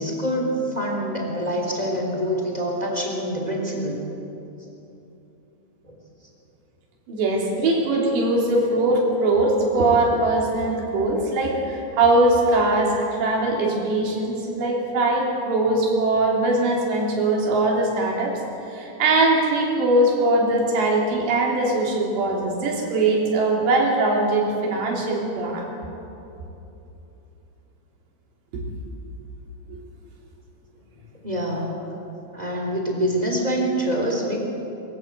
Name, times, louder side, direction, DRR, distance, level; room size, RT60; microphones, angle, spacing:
voice 1, 0.0-4.0 5.9-6.0 31.2-31.7 32.3-34.4, equal, 10° right, -1 dB, 3.0 m, -25 dB
voice 2, 7.1-18.4 18.7-25.7 29.7-29.8, right 2 dB, 90° right, -2 dB, 5.3 m, -21 dB
23.5 x 15.0 x 8.0 m, 2.9 s
omnidirectional pair, 4.9 m